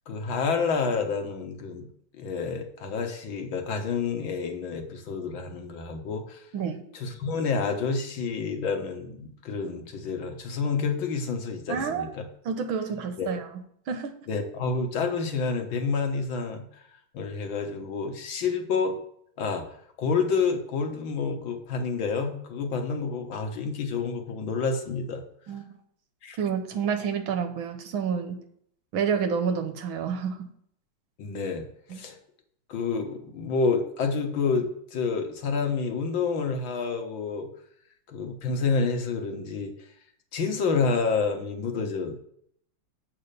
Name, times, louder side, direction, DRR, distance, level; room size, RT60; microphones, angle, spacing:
voice 1, 0.1-1.9 2.2-6.4 6.9-12.2 13.2-13.3 14.3-16.6 17.1-19.0 19.4-25.2 26.2-26.4 31.2-32.2 32.7-37.5 38.1-39.7 40.3-42.2, left 5 dB, 70° left, 4 dB, 1.9 m, -29 dB
voice 2, 11.7-12.1 12.5-13.5 13.9-14.1 25.5-25.7 26.4-28.4 28.9-30.5 31.9-32.0, right 6 dB, 75° right, 7 dB, 1.7 m, -29 dB
8.0 x 4.4 x 6.6 m, 0.67 s
omnidirectional pair, 2.2 m